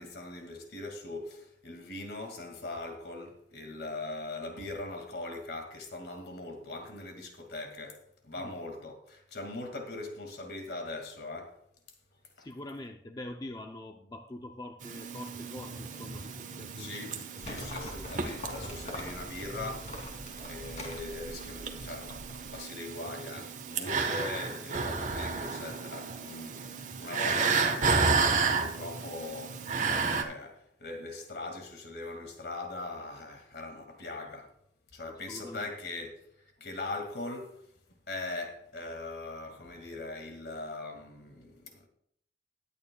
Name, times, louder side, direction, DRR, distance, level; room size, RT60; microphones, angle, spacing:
voice 1, 0.0-11.6 12.4-12.5 16.8-22.2 22.5-34.5 34.9-37.7 38.1-41.9, left 2 dB, 60° left, 2.1 m, -41 dB
voice 2, 12.4-17.1 35.1-35.7, left 1 dB, 20° left, 0.5 m, -44 dB
sound 1, 14.8-30.2, right 4 dB, 40° right, 1.1 m, -32 dB
Livestock farm animals working animals, 17.4-22.6, left 1 dB, 40° left, 2.8 m, -44 dB
19.5 x 9.0 x 2.3 m
head